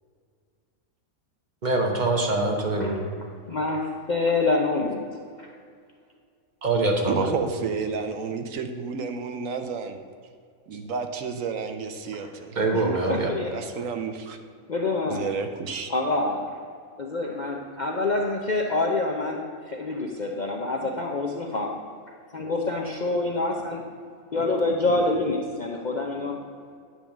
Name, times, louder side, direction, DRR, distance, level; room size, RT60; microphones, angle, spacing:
voice 1, 1.6-3.0 6.6-7.3 12.6-13.3, right 2 dB, 35° right, 1 dB, 1.1 m, -24 dB
voice 2, 3.5-5.0 5.4-5.5 12.2-12.3 12.7-13.6 14.7-15.3 15.9-16.6 17.0-19.4 19.7-21.8 22.3-23.8 24.3-26.4, left 2 dB, 50° left, 0 dB, 0.6 m, -26 dB
voice 3, 7.1-10.0 10.7-12.6 13.5-14.4 15.1-15.9, right 5 dB, 70° right, 7 dB, 1.0 m, -31 dB
9.9 x 3.5 x 7.2 m, 2.2 s
omnidirectional pair, 1.5 m